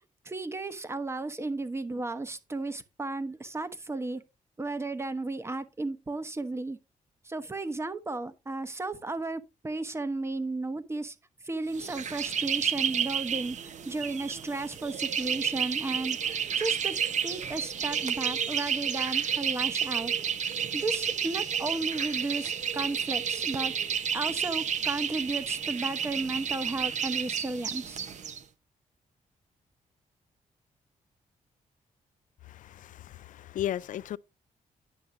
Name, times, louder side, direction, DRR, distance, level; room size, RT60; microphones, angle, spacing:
voice 1, 0.2-4.2 4.6-6.8 7.2-11.1 11.4-13.6 13.9-20.1 20.7-23.7 24.1-28.0, right 2 dB, 20° right, 1.0 m, -34 dB
sound 1, 11.7-28.4, right 8 dB, 60° right, 1.0 m, -31 dB
voice 2, 32.5-34.2, left 12 dB, 75° left, 0.5 m, -35 dB
9.9 x 7.1 x 3.8 m
cardioid pair, 120°, 14 cm